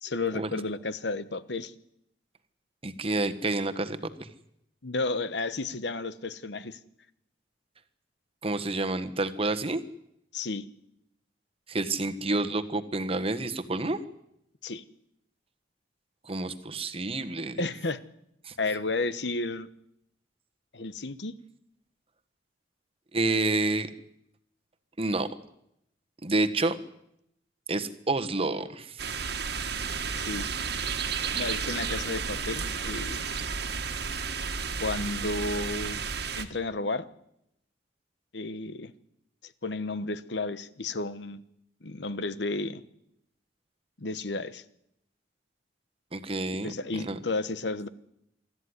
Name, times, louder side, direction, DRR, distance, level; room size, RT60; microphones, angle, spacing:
voice 1, 0.0-1.7 4.8-6.8 10.3-10.6 14.6-14.8 17.6-18.0 18.6-19.7 20.7-21.3 29.8-30.5 31.3-33.3 34.8-36.0 36.3-37.0 38.3-38.9 39.4-41.4 41.8-42.8 44.0-44.6 46.6-47.9, left 3 dB, 65° left, 14 dB, 1.1 m, -32 dB
voice 2, 2.8-4.3 8.4-9.8 11.7-14.0 16.2-17.6 18.4-18.5 23.1-23.9 25.0-25.3 26.2-26.8 27.7-29.1 46.1-47.2, right 2 dB, 30° right, 9 dB, 1.4 m, -29 dB
sound 1, 29.0-36.4, right 5 dB, 60° right, 1.8 m, -32 dB
25.0 x 13.5 x 9.8 m, 0.79 s
head